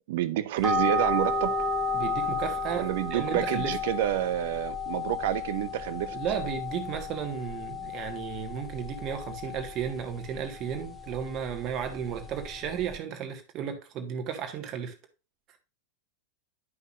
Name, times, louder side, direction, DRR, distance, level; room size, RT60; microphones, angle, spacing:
voice 1, 0.1-1.6 2.8-6.2, right 13 dB, 50° right, 0.7 m, -28 dB
sound 1, 0.6-13.0, left 3 dB, ahead, 1.2 m, -33 dB
voice 2, 1.9-3.8 6.1-14.9, right 8 dB, 35° right, 1.6 m, -34 dB
11.5 x 5.5 x 2.5 m
figure-of-eight pair, 90°, 0 cm